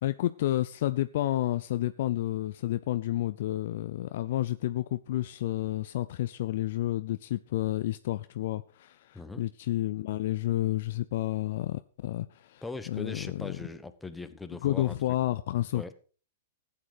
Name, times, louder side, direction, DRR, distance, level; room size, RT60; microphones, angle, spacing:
voice 1, 0.0-12.6 12.9-13.5 14.6-15.9, left 14 dB, 55° left, 0.6 m, -30 dB
voice 2, 9.1-9.5 12.6-15.0 15.7-15.9, left 3 dB, 10° left, 1.2 m, -40 dB
14.5 x 8.9 x 5.0 m
figure-of-eight pair, 105°, 0 cm